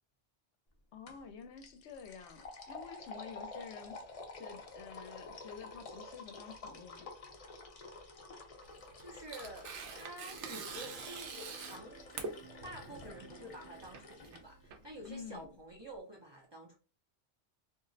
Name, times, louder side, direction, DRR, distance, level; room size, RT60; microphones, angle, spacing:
voice 1, 0.9-4.0 4.4-7.1 15.1-15.5, left 6 dB, 75° left, 0.8 m, -49 dB
sound 1, 1.1-1.3 1.6-14.4, left 3 dB, 50° left, 0.4 m, -50 dB
Tearing, 8.6-15.4, right 4 dB, 85° right, 0.9 m, -46 dB
voice 2, 9.0-16.8, right 1 dB, 30° right, 0.5 m, -49 dB
sound 2, 10.3-15.5, right 4 dB, 25° left, 0.8 m, -59 dB
2.5 x 2.0 x 3.8 m
omnidirectional pair, 1.2 m